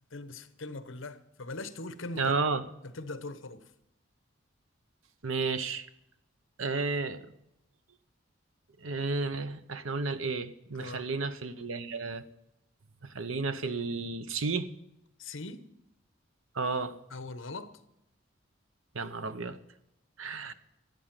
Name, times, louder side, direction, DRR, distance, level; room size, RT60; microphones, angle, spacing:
voice 1, 0.1-2.3 2.8-3.7 10.8-11.1 15.2-15.6 17.1-17.8 20.4-20.5, left 2 dB, 75° left, 1.0 m, -41 dB
voice 2, 2.2-2.6 5.2-5.9 6.6-7.2 8.8-12.2 13.0-14.7 16.5-17.0 18.9-19.6 20.2-20.5, right 4 dB, 85° right, 0.9 m, -32 dB
13.5 x 8.6 x 7.4 m
head